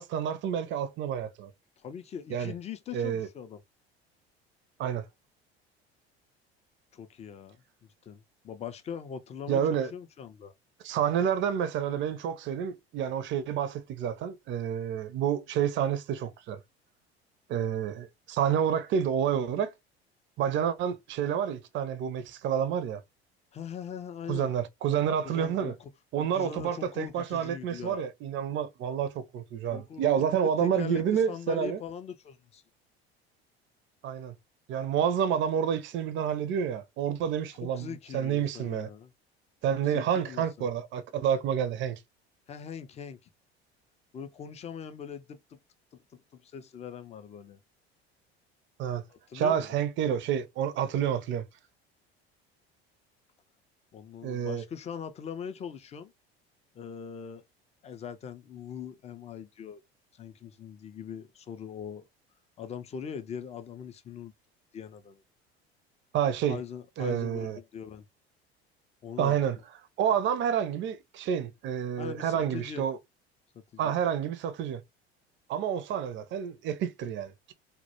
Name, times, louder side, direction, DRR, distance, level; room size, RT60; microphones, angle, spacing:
voice 1, 0.0-1.5 2.3-2.5 2.9-3.3 4.8-5.0 9.5-9.9 10.8-16.6 17.5-19.7 20.4-23.0 24.3-25.7 26.1-31.8 34.0-34.3 34.7-38.9 39.6-42.0 48.8-49.0 49.3-51.4 54.2-54.6 66.1-66.6 67.0-67.6 69.2-69.6 70.0-73.0 73.8-74.8 75.5-77.5, right 8 dB, 40° right, 0.5 m, -29 dB
voice 2, 1.8-3.6 6.9-7.6 7.8-10.5 23.5-24.5 25.2-25.9 26.2-28.1 29.7-32.6 37.6-39.1 39.7-40.7 42.5-43.3 44.1-45.6 45.9-47.6 49.1-49.7 53.9-56.1 56.7-57.4 57.8-59.8 60.1-62.0 62.6-64.3 64.7-65.2 66.5-68.1 69.0-69.4 72.0-72.8 73.7-74.0, left 7 dB, 20° left, 0.3 m, -41 dB
2.1 x 2.1 x 2.8 m
hypercardioid pair, 65°, 32 cm